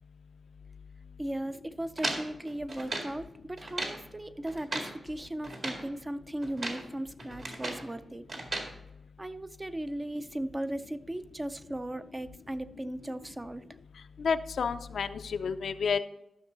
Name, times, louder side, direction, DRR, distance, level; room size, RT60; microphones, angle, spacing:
voice 1, 1.2-8.3 9.2-13.7, right 1 dB, 15° right, 11 dB, 0.4 m, -37 dB
sound 1, 2.0-3.2 3.6-4.0 4.5-5.0 5.4-5.9 6.4-6.9 7.2-7.9 8.3-8.7, right 2 dB, 55° right, 2.0 m, -36 dB
voice 2, 14.2-16.0, left 6 dB, 75° left, 10 dB, 0.5 m, -30 dB
13.0 x 6.1 x 3.9 m, 0.87 s
wide cardioid pair, 110°, 0 cm